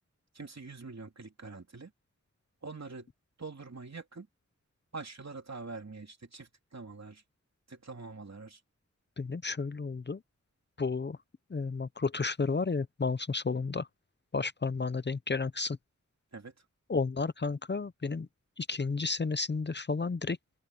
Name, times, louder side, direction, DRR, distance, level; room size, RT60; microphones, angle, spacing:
voice 1, 0.3-1.9 2.6-3.1 3.4-4.3 4.9-7.2 7.7-8.6 16.3-16.6, right 4 dB, 65° right, 3.2 m, -44 dB
voice 2, 9.2-10.2 10.8-11.2 11.5-13.9 14.3-15.8 16.9-18.3 18.6-20.4, left 4 dB, 35° left, 0.6 m, -32 dB
open air
wide cardioid pair, 65°, 29 cm